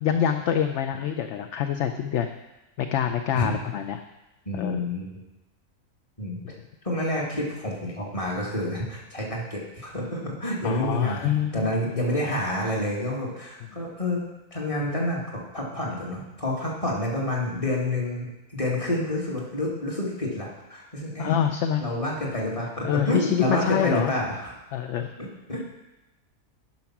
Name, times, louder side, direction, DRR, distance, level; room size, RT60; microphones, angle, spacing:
voice 1, 0.0-2.3 2.8-4.0 4.5-4.9 10.6-12.0 21.2-21.8 22.8-24.1 24.7-25.1, left 9 dB, 65° left, 7 dB, 0.8 m, -26 dB
voice 2, 4.5-5.1 6.2-6.6 6.8-14.2 14.5-21.3 21.8-24.6 25.2-25.6, left 1 dB, 25° left, -3 dB, 2.0 m, -28 dB
10.5 x 5.9 x 5.9 m, 0.99 s
omnidirectional pair, 1.5 m